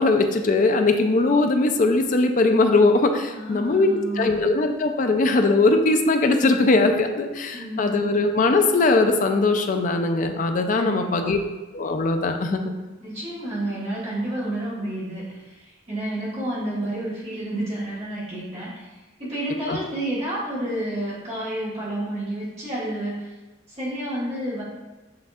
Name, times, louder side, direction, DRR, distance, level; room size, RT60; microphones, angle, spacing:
voice 1, 0.0-3.9 4.2-11.4 11.7-12.7 19.7-19.8, left 3 dB, 40° left, 6 dB, 0.4 m, -20 dB
voice 2, 3.2-4.3 7.5-8.1 10.7-11.3 13.0-23.3 23.7-24.6, right 1 dB, 30° right, -10 dB, 1.4 m, -30 dB
7.5 x 2.7 x 2.4 m, 1.2 s
head